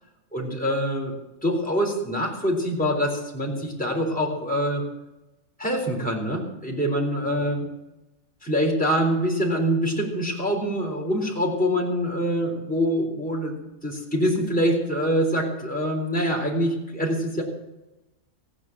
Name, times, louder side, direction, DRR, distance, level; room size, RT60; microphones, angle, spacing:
voice 1, 0.3-1.1 1.4-4.8 5.6-7.7 8.4-13.6 13.8-17.4, equal, 5° left, -2 dB, 3.7 m, -25 dB
16.0 x 9.8 x 7.5 m, 0.98 s
omnidirectional pair, 1.4 m